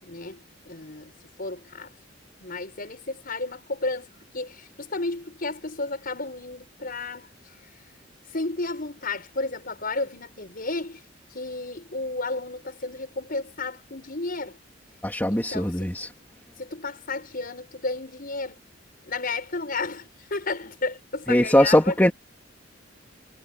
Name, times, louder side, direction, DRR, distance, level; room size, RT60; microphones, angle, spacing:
voice 1, 0.0-2.0 2.4-7.7 8.3-11.0 11.3-14.6 15.3-15.7 16.6-18.6 19.0-21.9, left 3 dB, 50° left, 5.8 m, -33 dB
voice 2, 15.0-16.1 21.3-22.1, left 1 dB, 10° left, 2.7 m, -20 dB
head